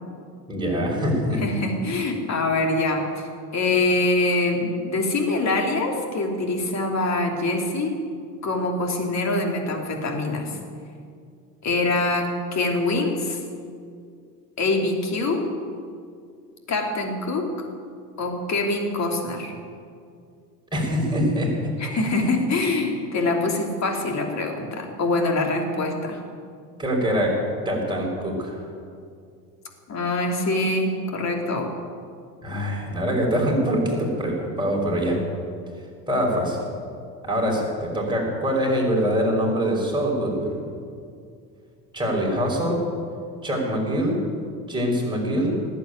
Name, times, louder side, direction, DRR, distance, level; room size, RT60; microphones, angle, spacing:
voice 1, 0.5-1.4 20.7-22.1 26.8-27.4 27.7-28.6 32.4-35.2 36.1-36.6 37.2-40.6 41.9-42.8 43.4-44.2 44.7-45.6, equal, 10° right, -2 dB, 5.6 m, -24 dB
voice 2, 1.4-8.0 8.4-10.6 11.6-13.4 14.6-15.5 16.7-17.7 18.2-19.5 21.8-26.2 29.9-31.7, left 2 dB, 35° left, 2 dB, 3.1 m, -24 dB
18.0 x 8.5 x 9.3 m, 2.3 s
figure-of-eight pair, 70°, 48 cm